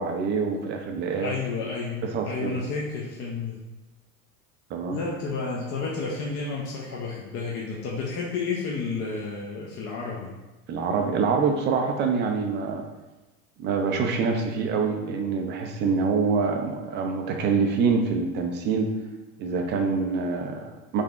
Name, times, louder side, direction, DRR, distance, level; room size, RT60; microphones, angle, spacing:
voice 1, 0.0-1.3 2.0-2.6 4.7-5.0 10.7-12.8 13.6-18.9 19.4-21.0, right 5 dB, 25° right, 3 dB, 0.3 m, -25 dB
voice 2, 1.1-3.6 4.9-10.4, left 4 dB, 35° left, -3 dB, 0.5 m, -31 dB
3.7 x 3.2 x 2.4 m, 1.1 s
hypercardioid pair, 90°, 44 cm